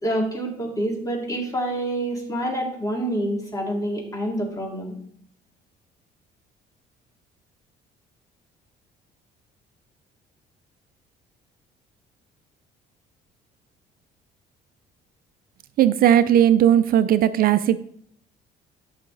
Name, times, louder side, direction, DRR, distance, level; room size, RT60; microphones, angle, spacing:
voice 1, 0.0-5.0, right 1 dB, 20° left, 0 dB, 2.7 m, -27 dB
voice 2, 15.8-17.8, right 10 dB, 60° right, 13 dB, 0.5 m, -17 dB
13.0 x 5.6 x 3.9 m, 0.64 s
cardioid pair, 110°, 17 cm